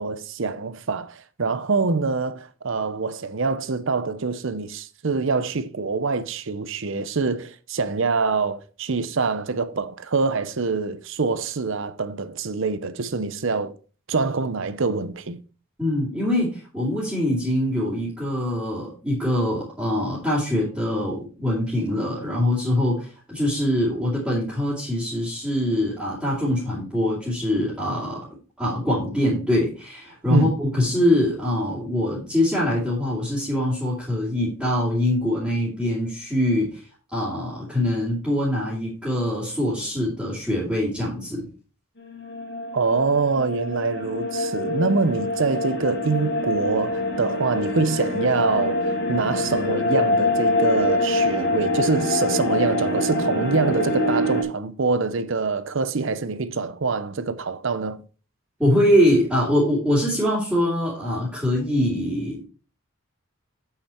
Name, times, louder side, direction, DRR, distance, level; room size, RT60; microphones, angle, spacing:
voice 1, 0.0-13.7 14.1-15.4 30.3-30.5 42.7-58.0, right 4 dB, 60° right, 0.7 m, -25 dB
voice 2, 15.8-28.3 28.6-36.8 37.1-41.5 58.6-62.4, left 1 dB, 5° right, 2.7 m, -23 dB
sound 1, 42.1-54.4, left 2 dB, 50° left, 1.9 m, -25 dB
8.5 x 5.8 x 4.4 m
head